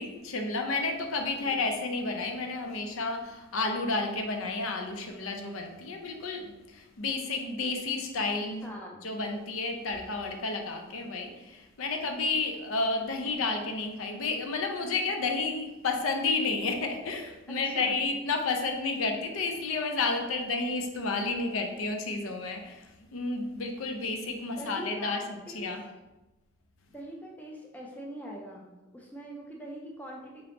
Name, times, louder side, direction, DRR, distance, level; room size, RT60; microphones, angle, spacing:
voice 1, 0.0-8.7 9.0-25.2 25.5-25.8, left 3 dB, 80° left, 4 dB, 0.5 m, -31 dB
voice 2, 8.6-9.0 17.5-18.0 24.6-25.7 26.9-28.7 28.9-30.5, equal, 5° left, -2 dB, 0.4 m, -42 dB
3.7 x 2.9 x 3.4 m, 1.0 s
head